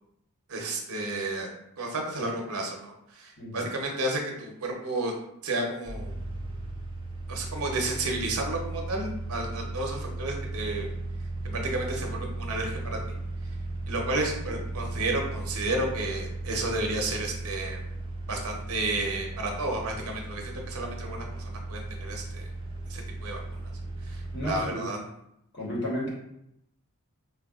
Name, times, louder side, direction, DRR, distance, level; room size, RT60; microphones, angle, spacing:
voice 1, 0.5-1.5 1.8-5.1 5.4-6.2 7.3-10.9 11.4-13.2 13.9-17.8 18.3-22.5 22.9-23.6 24.0-25.0, right 2 dB, 80° right, 1 dB, 0.7 m, -32 dB
sound 1, 5.8-24.6, right 2 dB, 25° right, 0.4 m, -36 dB
voice 2, 24.3-25.0 25.5-26.1, equal, 50° left, -5 dB, 1.0 m, -32 dB
4.5 x 2.2 x 2.3 m, 0.78 s
head